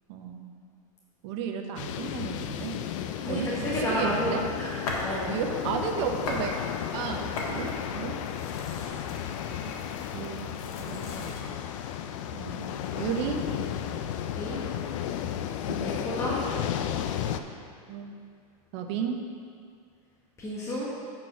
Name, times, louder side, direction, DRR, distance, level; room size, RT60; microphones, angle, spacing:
voice 1, 0.1-0.5 1.2-2.7 3.3-4.4 5.1-6.6 6.9-8.2 8.8-9.0 9.6-10.5 10.9-11.3 12.3-13.4 15.7-15.9 17.9-18.1 18.7-19.2, right 7 dB, 55° right, 3 dB, 0.9 m, -34 dB
sound 1, 1.8-17.4, left 10 dB, 60° left, 0.5 m, -33 dB
voice 2, 3.2-4.7 5.0-5.3 14.3-14.6 15.8-16.4 20.4-20.9, equal, 15° left, -7 dB, 1.4 m, -31 dB
sound 2, 4.9-5.2 5.6-6.5 6.8-11.5, left 2 dB, 80° left, 1.6 m, -39 dB
7.9 x 4.5 x 6.1 m, 2.2 s
supercardioid pair, 140°, 18 cm